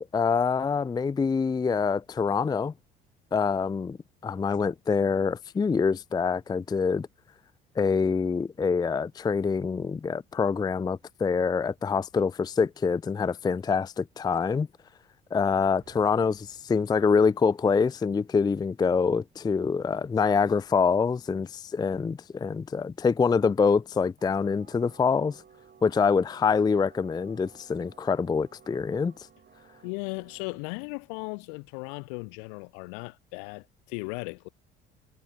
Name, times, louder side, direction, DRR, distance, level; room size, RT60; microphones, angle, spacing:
voice 1, 0.1-2.7 3.3-4.0 4.2-7.1 7.8-14.7 15.3-25.4 25.8-29.1, left 5 dB, 15° left, 0.5 m, -25 dB
sound 1, 15.8-18.7 24.2-30.6, right 7 dB, 35° right, 5.2 m, -57 dB
voice 2, 29.8-34.5, left 40 dB or more, 60° left, 1.5 m, -37 dB
figure-of-eight pair, 55°, 29 cm